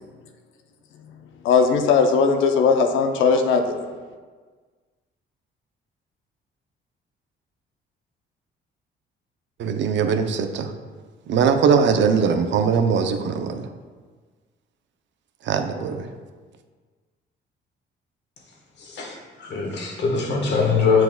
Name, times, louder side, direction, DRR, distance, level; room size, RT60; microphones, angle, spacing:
voice 1, 1.4-3.7, left 5 dB, 80° left, 5 dB, 0.6 m, -18 dB
voice 2, 9.6-10.7 11.3-13.6 15.5-16.1, right 6 dB, 70° right, 7 dB, 0.6 m, -21 dB
voice 3, 18.8-21.0, left 5 dB, 65° left, 0 dB, 1.3 m, -22 dB
6.9 x 6.1 x 2.2 m, 1.5 s
cardioid pair, 90°, 20 cm